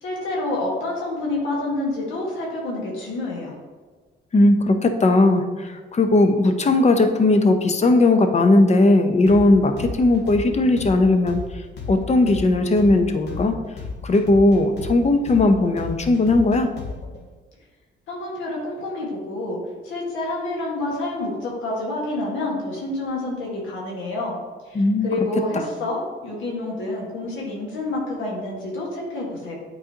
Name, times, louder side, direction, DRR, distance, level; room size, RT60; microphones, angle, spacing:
voice 1, 0.0-3.5 18.1-19.6 19.8-24.4 24.7-29.5, left 2 dB, 80° left, -3 dB, 1.6 m, -28 dB
voice 2, 4.3-11.4 11.9-13.6 14.0-16.7 24.7-25.1, left 2 dB, 35° left, 7 dB, 0.7 m, -17 dB
sound 1, 9.3-17.2, left 4 dB, 60° left, 1.0 m, -33 dB
8.5 x 4.0 x 2.9 m, 1.4 s
cardioid pair, 90°, 20 cm